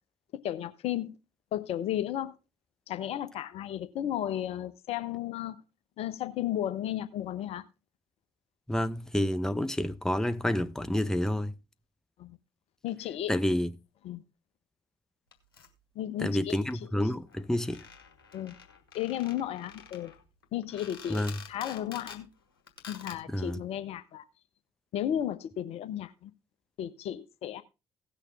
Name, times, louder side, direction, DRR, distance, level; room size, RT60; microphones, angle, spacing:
voice 1, 0.3-1.2 1.5-2.3 2.9-5.6 6.0-7.6 12.2-12.4 12.8-13.3 14.0-14.2 15.9-16.9 18.3-18.6 18.9-20.1 20.5-22.3 22.9-24.2 24.9-26.3 26.8-27.6, left 11 dB, 60° left, 1.1 m, -34 dB
voice 2, 8.7-11.5 13.3-13.7 16.2-17.8 21.1-21.3 23.3-23.6, left 1 dB, 5° left, 1.0 m, -29 dB
sound 1, 15.3-15.7 16.4-16.5 16.7-16.8 17.0-17.1 17.3-22.3 22.7-23.1, left 6 dB, 80° left, 1.5 m, -48 dB
17.0 x 6.5 x 3.6 m
figure-of-eight pair, 45°, 12 cm